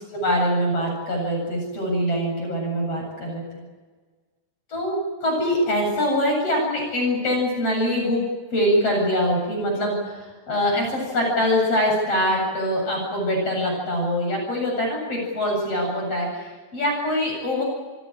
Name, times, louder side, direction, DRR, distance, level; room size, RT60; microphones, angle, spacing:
voice 1, 0.1-3.6 4.7-8.2 8.5-17.6, equal, 55° left, 0 dB, 9.2 m, -24 dB
29.0 x 19.0 x 8.9 m, 1.4 s
omnidirectional pair, 3.3 m